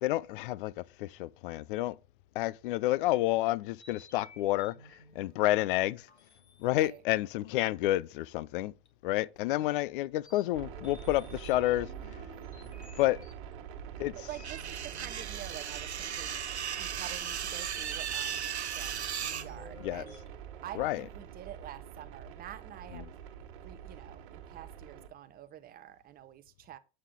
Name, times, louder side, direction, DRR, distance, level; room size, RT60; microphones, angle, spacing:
voice 1, 0.0-2.0 2.3-6.1 6.6-8.7 9.0-11.9 13.0-13.2 14.0-14.1 19.3-19.4 19.8-20.0 20.8-21.0 22.9-23.1, left 16 dB, 55° left, 0.6 m, -30 dB
sound 1, 3.8-7.2 8.9-9.0 9.3-9.4 10.2-13.8 14.3-16.2 17.2-17.3 19.1-21.2, left 2 dB, 90° left, 1.8 m, -55 dB
sound 2, 10.5-25.1, right 9 dB, 55° right, 1.9 m, -45 dB
voice 2, 14.2-16.4 16.7-20.2 20.6-23.1 23.6-26.8, right 11 dB, 25° right, 0.9 m, -47 dB
sound 3, 14.4-19.4, right 8 dB, 85° right, 0.7 m, -36 dB
8.8 x 7.3 x 3.7 m
hypercardioid pair, 95°, 33 cm